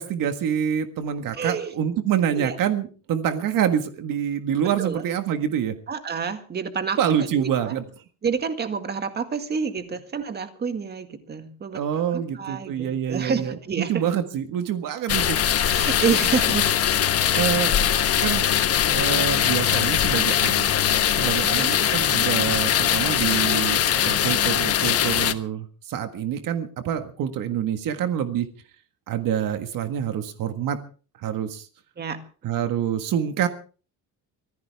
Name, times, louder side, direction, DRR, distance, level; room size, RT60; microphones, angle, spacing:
voice 1, 0.0-5.7 7.0-7.8 11.7-15.4 16.5-16.6 17.3-17.7 18.2-18.5 18.9-20.7 21.1-28.5 29.1-30.8 31.2-31.7 32.4-33.5, right 9 dB, 55° right, 8 dB, 1.7 m, -26 dB
voice 2, 1.3-1.7 2.3-2.6 4.8-5.0 5.9-7.7 8.2-11.8 12.1-14.0 15.7-16.6 17.3-17.4 21.4-21.8 32.0-32.2, right 6 dB, 25° right, 8 dB, 1.9 m, -29 dB
sound 1, 15.1-25.3, left 10 dB, 40° left, 1.2 m, -21 dB
24.5 x 15.5 x 3.5 m, 0.38 s
cardioid pair, 170°, 39 cm